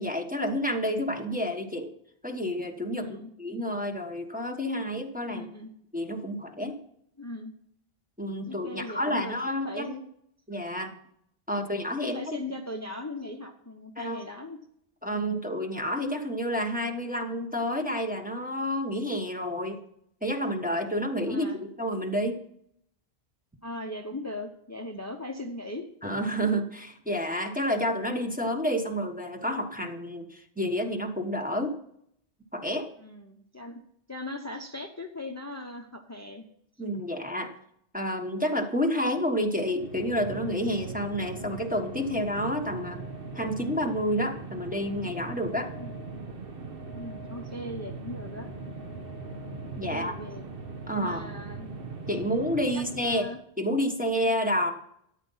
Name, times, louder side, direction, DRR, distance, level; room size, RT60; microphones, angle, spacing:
voice 1, 0.0-1.9 2.2-5.5 5.9-6.8 8.2-9.9 10.5-10.9 11.5-12.4 14.0-14.2 15.0-19.8 20.2-22.4 26.0-31.8 32.5-32.9 36.8-37.6 37.9-43.0 43.3-45.7 49.8-50.1 50.9-51.2 52.1-53.3 53.6-54.7, equal, 10° right, 2 dB, 1.2 m, -29 dB
voice 2, 2.9-3.3 5.2-5.7 7.2-7.5 8.5-10.1 12.0-14.6 21.3-21.6 23.6-25.9 26.4-26.5 33.0-33.8 34.1-36.4 45.8-46.0 46.9-48.5 49.8-50.4 51.0-51.7 52.7-53.4, left 1 dB, 15° left, 3 dB, 0.9 m, -39 dB
sound 1, 39.6-53.4, right 3 dB, 60° right, 1.3 m, -40 dB
13.0 x 9.3 x 5.6 m, 0.70 s
omnidirectional pair, 1.1 m